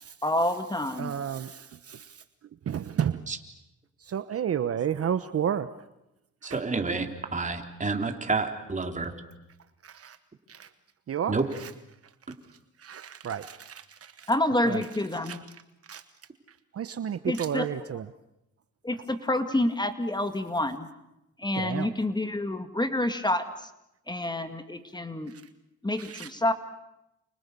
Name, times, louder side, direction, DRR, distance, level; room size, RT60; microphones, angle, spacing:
voice 1, 0.2-1.1 14.3-15.4 17.3-17.7 18.8-20.9 21.4-23.4 24.1-25.3 25.8-26.5, left 1 dB, 15° left, 8 dB, 2.2 m, -28 dB
voice 2, 1.0-2.1 2.7-3.2 4.1-5.7 6.5-6.6 9.8-10.2 10.5-10.7 11.1-11.7 12.8-14.3 14.6-14.8 15.3-15.4 15.9-16.0 16.7-18.0 21.6-21.9 26.0-26.3, right 9 dB, 50° right, 11 dB, 1.1 m, -31 dB
voice 3, 6.4-7.1 7.3-9.1 11.3-11.5, right 4 dB, 25° right, 4 dB, 3.7 m, -29 dB
29.5 x 29.0 x 6.9 m, 0.90 s
cardioid pair, 90°, 30 cm